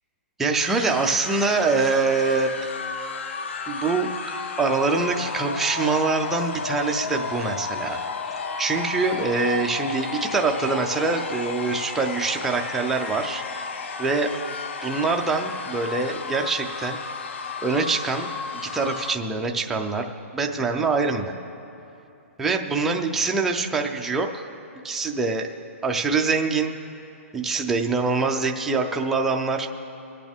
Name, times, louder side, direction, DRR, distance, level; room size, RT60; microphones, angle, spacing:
voice 1, 0.4-2.7 3.7-4.1 4.6-8.0 8.6-13.7 14.0-14.4 14.8-17.0 17.6-18.3 18.5-20.1 20.3-21.3 22.4-24.5 24.8-25.5 25.8-26.8 27.3-29.7, right 4 dB, 5° right, 1 dB, 0.4 m, -24 dB
sound 1, 0.6-19.2, left 5 dB, 55° left, 0.7 m, -33 dB
24.5 x 8.6 x 3.5 m, 2.8 s
hypercardioid pair, 180°, 8 cm